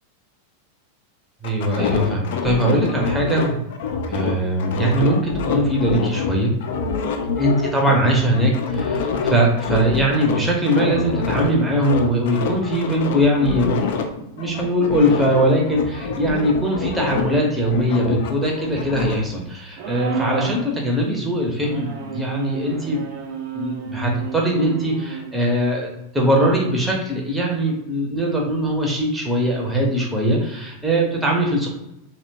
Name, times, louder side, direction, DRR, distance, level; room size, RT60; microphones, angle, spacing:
sound 1, 1.4-6.3 6.6-11.5 11.8-14.0 14.4-17.4 17.6-19.2, left 5 dB, 55° left, 0.3 m, -26 dB
voice 1, 1.4-3.6 4.1-6.5 7.4-23.0 23.5-31.7, equal, 5° right, -1 dB, 0.6 m, -21 dB
sound 2, 19.8-20.7 21.6-25.3, right 5 dB, 50° right, 0.4 m, -31 dB
2.8 x 2.1 x 2.7 m, 0.88 s
figure-of-eight pair, 90°, 0 cm